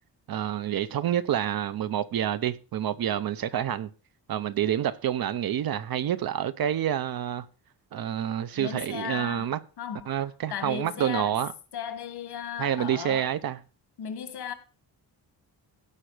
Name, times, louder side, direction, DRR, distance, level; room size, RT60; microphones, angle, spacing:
voice 1, 0.3-3.9 4.3-7.5 7.9-9.6 10.1-11.5 12.6-13.6, right 10 dB, 60° right, 0.7 m, -28 dB
voice 2, 8.5-9.5 9.8-10.2 10.5-11.4 11.7-13.3 14.0-14.5, left 8 dB, 65° left, 1.8 m, -36 dB
16.5 x 5.6 x 4.9 m
wide cardioid pair, 155°, 40 cm